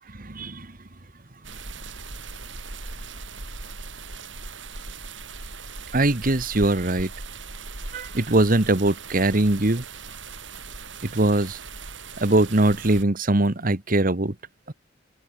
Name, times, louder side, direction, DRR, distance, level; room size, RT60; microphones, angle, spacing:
voice 1, 0.1-0.7 5.9-7.1 7.9-9.8 11.0-11.6 12.2-14.3 14.7-14.8, right 2 dB, 45° right, 1.5 m, -21 dB
sound 1, 1.4-13.0, right 4 dB, 75° right, 5.0 m, -39 dB
open air
head